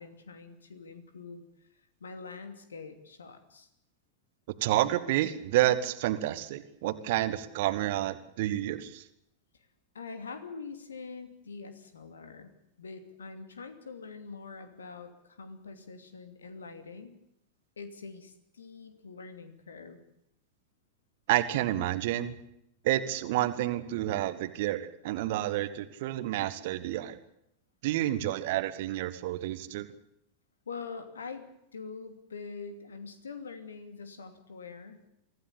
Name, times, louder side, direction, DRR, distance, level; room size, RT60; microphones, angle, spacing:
voice 1, 0.0-1.4 2.0-3.7 9.9-12.5 12.8-17.1 17.8-20.0 30.7-31.4 31.7-35.0, left 4 dB, 70° left, 9 dB, 2.7 m, -44 dB
voice 2, 4.6-9.0 21.3-22.4 22.8-27.2 27.8-29.9, right 14 dB, 50° right, 13 dB, 1.6 m, -29 dB
24.5 x 15.5 x 8.7 m, 0.79 s
figure-of-eight pair, 90°, 0 cm